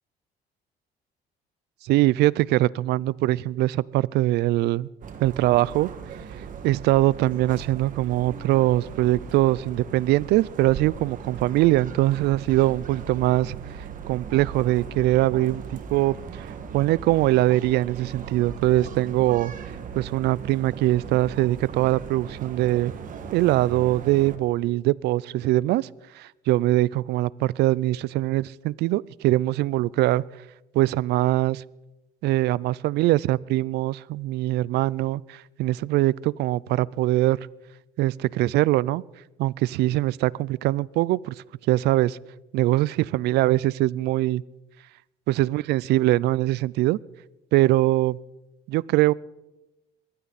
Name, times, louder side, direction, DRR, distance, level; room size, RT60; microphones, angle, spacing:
voice 1, 1.8-4.9 5.2-5.9 6.6-16.5 16.7-19.5 20.0-22.9 23.3-25.9 26.1-30.2 30.7-31.6 32.2-37.4 38.0-39.0 39.4-41.3 41.7-42.2 42.5-44.4 45.3-47.0 47.5-48.2 48.7-49.1, right 16 dB, 80° right, 0.4 m, -22 dB
sound 1, 5.0-24.4, right 6 dB, 50° right, 1.8 m, -38 dB
22.0 x 16.0 x 4.1 m
cardioid pair, 110°, 17 cm